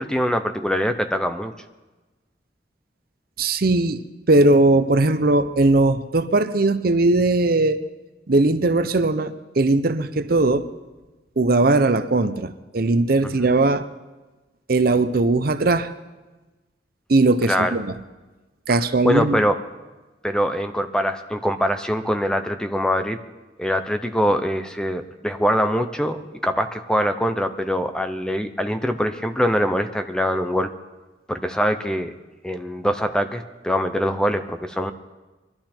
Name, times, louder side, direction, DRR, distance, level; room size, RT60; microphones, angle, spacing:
voice 1, 0.0-1.5 17.5-17.8 19.0-19.6 20.2-23.2 23.6-30.7 31.3-32.1 32.4-34.9, equal, 5° left, 8 dB, 0.7 m, -23 dB
voice 2, 3.4-4.0 4.3-7.8 8.3-10.7 11.4-13.9 14.7-15.9 17.1-17.9 18.7-19.4, right 2 dB, 55° right, 11 dB, 0.7 m, -19 dB
23.0 x 12.5 x 4.4 m, 1.2 s
head